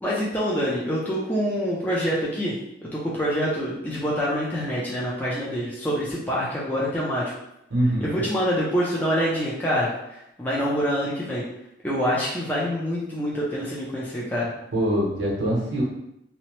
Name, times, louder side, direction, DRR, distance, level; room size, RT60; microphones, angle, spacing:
voice 1, 0.0-2.5 2.9-7.3 8.0-9.9 10.4-11.4 11.8-14.5, equal, 10° left, -7 dB, 0.4 m, -26 dB
voice 2, 7.7-8.2 14.7-15.8, right 1 dB, 80° right, -5 dB, 0.8 m, -24 dB
2.8 x 2.0 x 3.0 m, 0.82 s
head